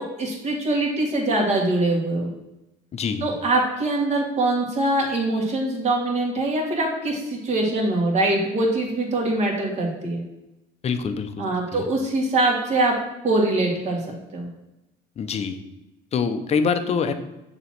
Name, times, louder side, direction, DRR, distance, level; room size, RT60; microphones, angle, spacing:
voice 1, 0.0-2.3 3.2-10.2 11.4-12.9 13.2-14.0 14.3-14.5, right 2 dB, 40° right, -1 dB, 2.1 m, -23 dB
voice 2, 2.9-3.3 10.8-11.5 11.7-11.9 15.2-15.6 16.1-17.1, left 5 dB, 40° left, 9 dB, 0.7 m, -25 dB
6.7 x 3.1 x 5.9 m, 0.95 s
cardioid pair, 110°, 17 cm